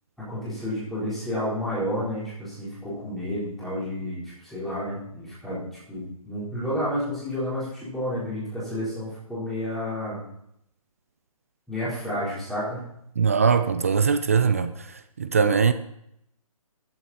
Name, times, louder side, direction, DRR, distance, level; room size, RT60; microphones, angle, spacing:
voice 1, 0.3-10.2 11.7-12.8, equal, ahead, 4.0 m, -30 dB
voice 2, 13.2-14.7 15.2-15.7, right 6 dB, 25° right, 0.4 m, -21 dB
14.0 x 7.8 x 4.2 m
hypercardioid pair, 170°, 19 cm